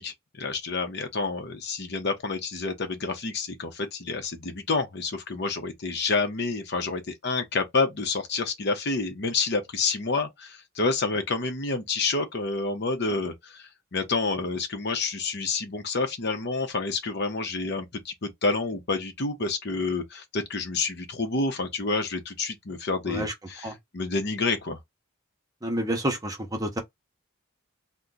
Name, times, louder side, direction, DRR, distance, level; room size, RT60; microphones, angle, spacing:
voice 1, 0.0-24.8, left 3 dB, 50° left, 0.7 m, -29 dB
voice 2, 25.6-26.8, right 1 dB, 15° right, 0.8 m, -29 dB
2.8 x 2.1 x 3.7 m
head